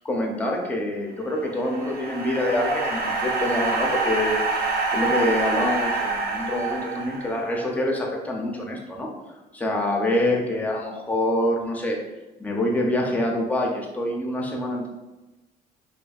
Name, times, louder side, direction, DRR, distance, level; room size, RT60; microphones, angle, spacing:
voice 1, 0.1-4.7 4.9-9.1 9.5-12.0 12.4-14.9, left 1 dB, 10° left, -1 dB, 0.5 m, -26 dB
sound 1, 1.3-7.7, right 3 dB, 60° right, 0.6 m, -26 dB
2.5 x 2.2 x 2.3 m, 1.1 s
cardioid pair, 110°, 17 cm